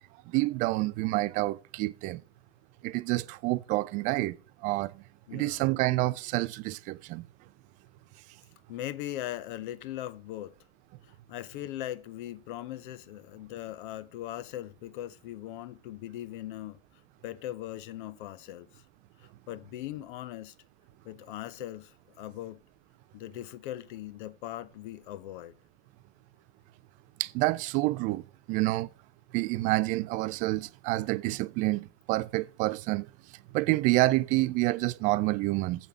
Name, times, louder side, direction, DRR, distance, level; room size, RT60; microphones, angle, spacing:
voice 1, 0.3-2.2 2.8-4.4 4.6-4.9 5.3-7.2 27.2-28.2 28.5-28.9 29.3-33.1 33.5-35.9, right 19 dB, 25° right, 0.4 m, -28 dB
voice 2, 5.3-5.6 8.7-10.5 11.3-16.8 17.2-18.8 19.5-20.5 21.0-22.6 23.1-25.6, left 13 dB, 45° left, 0.8 m, -39 dB
8.1 x 6.6 x 6.2 m
figure-of-eight pair, 95°, 34 cm